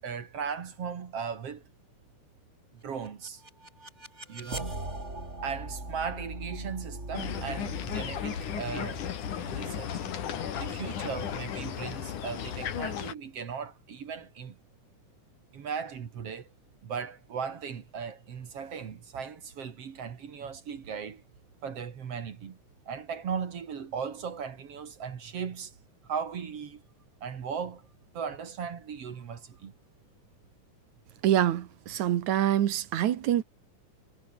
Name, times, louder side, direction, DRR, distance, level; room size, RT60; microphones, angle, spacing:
voice 1, 0.0-1.6 2.7-3.4 4.3-4.7 5.4-9.0 9.4-10.0 10.5-14.6 15.5-16.5 16.8-21.2 21.6-22.6 22.9-25.7 26.0-26.8 27.2-27.9 28.1-29.7, right 6 dB, 55° right, 2.9 m, -37 dB
sound 1, 3.0-12.0, right 2 dB, 20° right, 6.1 m, -41 dB
sound 2, 7.1-13.1, left 9 dB, 85° left, 3.7 m, -35 dB
voice 2, 31.2-33.4, right 11 dB, 75° right, 2.7 m, -25 dB
omnidirectional pair, 3.5 m